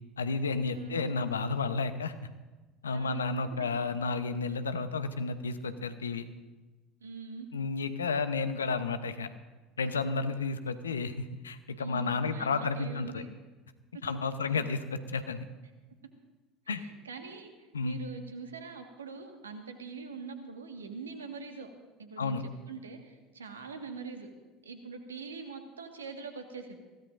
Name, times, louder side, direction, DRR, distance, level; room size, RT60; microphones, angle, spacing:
voice 1, 0.2-2.3 2.8-6.3 7.5-9.3 9.8-13.2 14.0-15.5 16.7-16.8 17.7-18.0 22.2-22.4, left 4 dB, 85° left, 11 dB, 0.9 m, -32 dB
voice 2, 0.7-1.0 2.9-3.2 3.6-3.7 7.0-7.5 11.8-13.3 13.9-14.0 14.4-14.7 16.7-21.7 22.0-24.3 24.6-26.8, right 4 dB, 85° right, 5 dB, 1.7 m, -43 dB
23.5 x 16.5 x 2.6 m, 1.2 s
figure-of-eight pair, 70°, 0 cm